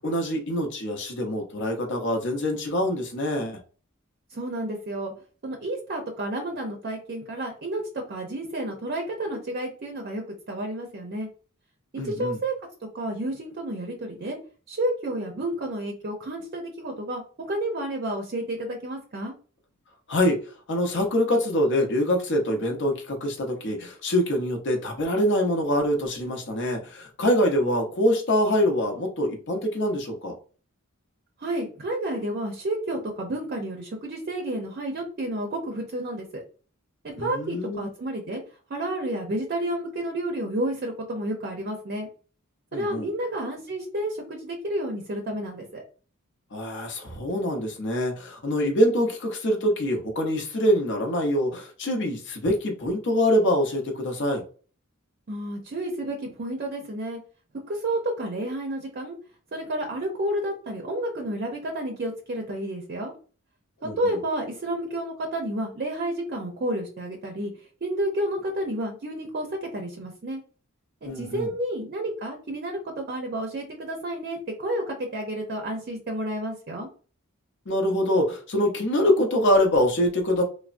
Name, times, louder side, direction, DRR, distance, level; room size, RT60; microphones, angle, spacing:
voice 1, 0.0-3.6 12.0-12.4 20.1-20.4 20.7-30.3 37.2-37.9 42.7-43.1 46.5-54.4 63.8-64.2 71.0-71.5 77.7-80.4, left 1 dB, 60° left, 2 dB, 0.7 m, -24 dB
voice 2, 4.3-5.1 5.4-11.3 11.9-12.5 12.9-14.4 14.7-19.3 31.4-36.4 37.0-38.4 38.7-42.1 42.7-45.8 55.3-57.2 57.7-59.2 59.5-63.1 64.0-67.5 67.8-70.4 71.0-76.9, right 1 dB, 45° right, 2 dB, 0.5 m, -30 dB
3.4 x 2.1 x 2.5 m, 0.38 s
head